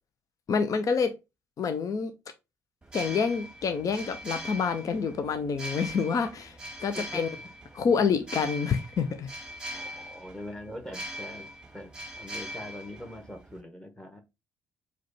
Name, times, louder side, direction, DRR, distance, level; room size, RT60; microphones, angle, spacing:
voice 1, 0.5-1.2 1.6-2.1 2.9-7.3 7.8-9.3, left 5 dB, 45° left, 0.6 m, -27 dB
sound 1, 2.8-13.6, equal, 10° right, 1.1 m, -41 dB
voice 2, 9.7-14.2, left 1 dB, 10° left, 1.2 m, -43 dB
4.9 x 2.4 x 4.0 m
hypercardioid pair, 45°, 8 cm